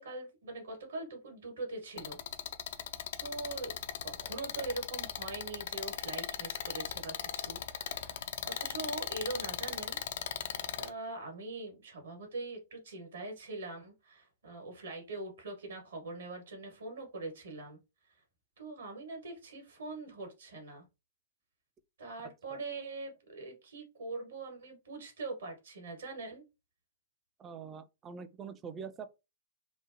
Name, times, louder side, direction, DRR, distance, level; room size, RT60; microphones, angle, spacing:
voice 1, 0.0-2.2 3.2-3.7 4.0-10.0 10.8-17.8 18.6-20.8 22.0-26.4, right 3 dB, 75° right, 1.1 m, -42 dB
sound 1, 2.0-10.9, left 9 dB, 60° left, 0.4 m, -38 dB
voice 2, 22.2-22.6 27.4-29.1, right 6 dB, 25° right, 0.4 m, -45 dB
3.0 x 2.0 x 2.5 m
figure-of-eight pair, 110°, 0 cm